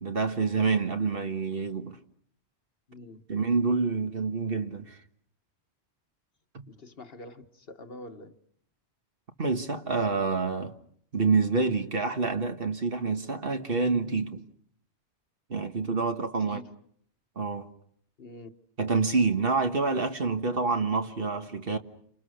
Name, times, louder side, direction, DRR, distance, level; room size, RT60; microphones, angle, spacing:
voice 1, 0.0-2.0 3.3-5.0 6.5-6.7 9.4-10.7 11.1-14.4 15.5-16.6 17.4-17.7 18.8-21.8, right 4 dB, 55° right, 1.8 m, -27 dB
voice 2, 2.9-3.3 6.7-8.4 16.4-16.7 18.2-18.5, left 1 dB, 60° left, 1.7 m, -46 dB
30.0 x 26.5 x 6.6 m
omnidirectional pair, 1.1 m